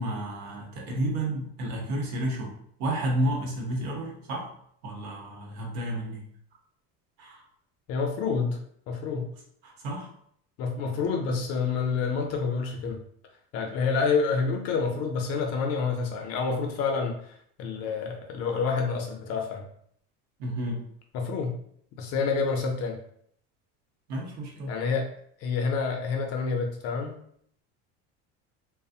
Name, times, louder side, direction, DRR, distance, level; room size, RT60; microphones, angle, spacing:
voice 1, 0.0-2.5 2.8-4.5 4.8-6.2 7.2-7.4 9.6-10.1 20.4-20.8 24.1-24.7, right 1 dB, 60° right, 0 dB, 0.8 m, -31 dB
voice 2, 7.9-8.6 8.9-9.3 10.6-13.0 13.5-19.6 21.1-21.5 22.0-23.0 24.7-25.1 25.4-27.2, left 5 dB, 50° left, 3 dB, 0.5 m, -28 dB
2.4 x 2.0 x 2.7 m, 0.65 s
cardioid pair, 145°, 33 cm